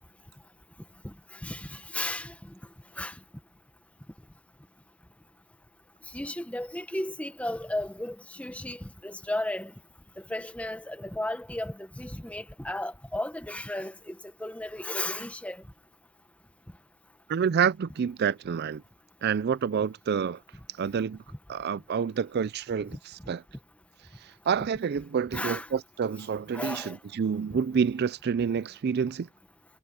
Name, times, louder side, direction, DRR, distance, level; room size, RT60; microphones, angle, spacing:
voice 1, 1.0-2.5 3.0-3.2 6.1-9.7 10.2-15.6 22.9-23.0 25.3-25.7 26.5-27.0 27.5-27.6, left 1 dB, 5° left, 1.3 m, -34 dB
voice 2, 17.3-18.8 19.2-20.4 20.8-21.2 21.5-23.4 24.2-29.3, right 7 dB, 55° right, 0.4 m, -28 dB
head